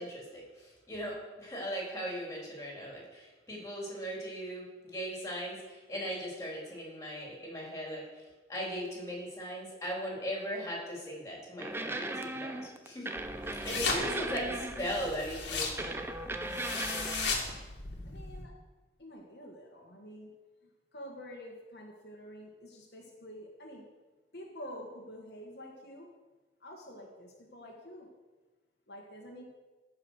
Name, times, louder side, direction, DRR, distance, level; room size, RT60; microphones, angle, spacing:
voice 1, 0.0-13.1 13.6-16.0, equal, 15° left, -2 dB, 3.4 m, -38 dB
sound 1, 11.6-15.1 15.8-17.3, right 2 dB, 15° right, 0.5 m, -37 dB
sound 2, 13.2-18.4, left 4 dB, 80° left, 2.1 m, -37 dB
voice 2, 18.0-18.5 19.0-20.3 20.9-23.8 24.3-26.1 26.6-28.1 28.9-29.4, equal, 65° left, -1 dB, 1.7 m, -48 dB
14.5 x 5.5 x 6.5 m, 1.2 s
head